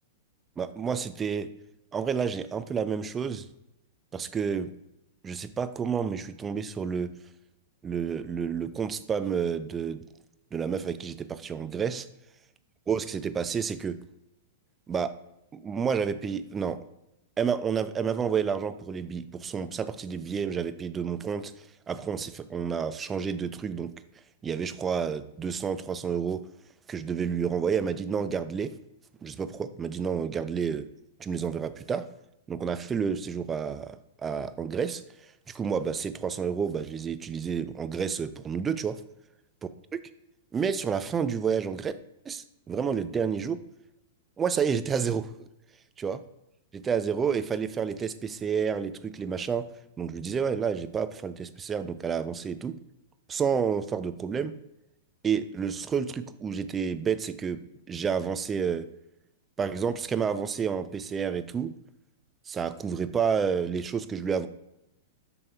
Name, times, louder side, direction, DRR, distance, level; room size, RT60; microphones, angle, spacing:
voice 1, 0.6-1.5 1.9-3.5 4.1-4.7 5.2-7.1 7.8-10.0 10.5-12.1 12.9-14.0 14.9-15.1 15.5-16.8 17.4-21.5 21.9-23.9 24.4-26.4 26.9-28.7 29.2-30.8 31.2-32.1 32.5-35.0 35.5-39.0 39.9-40.0 40.5-41.9 42.3-43.6 44.4-45.3 46.0-46.2 46.7-49.7 50.0-52.8 53.3-54.5 55.2-57.6 57.9-58.9 59.6-61.7 62.5-64.5, right 6 dB, 20° right, 12 dB, 0.4 m, -30 dB
7.3 x 5.9 x 2.3 m, 0.86 s
figure-of-eight pair, 100°, 0 cm